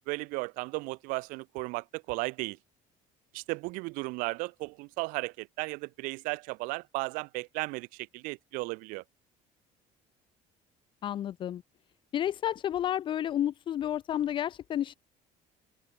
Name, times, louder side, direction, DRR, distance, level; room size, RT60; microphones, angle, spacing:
voice 1, 0.1-2.6 3.3-9.0, right 26 dB, 70° right, 0.4 m, -35 dB
voice 2, 11.0-11.6 12.1-14.9, left 11 dB, 35° left, 1.0 m, -31 dB
cardioid pair, 170°, 14 cm